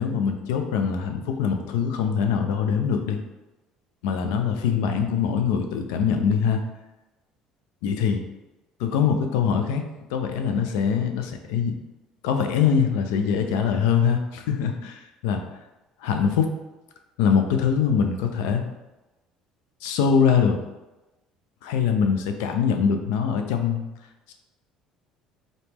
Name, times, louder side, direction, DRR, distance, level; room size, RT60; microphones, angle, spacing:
voice 1, 0.0-3.2 4.0-6.6 7.8-8.2 8.8-9.8 10.1-11.7 12.2-15.4 16.0-16.5 17.2-18.6 19.8-20.6 21.6-23.9 24.3-24.4, left 7 dB, 90° left, 5 dB, 0.5 m, -23 dB
4.0 x 3.0 x 3.5 m, 1.1 s
supercardioid pair, 100°, 2 cm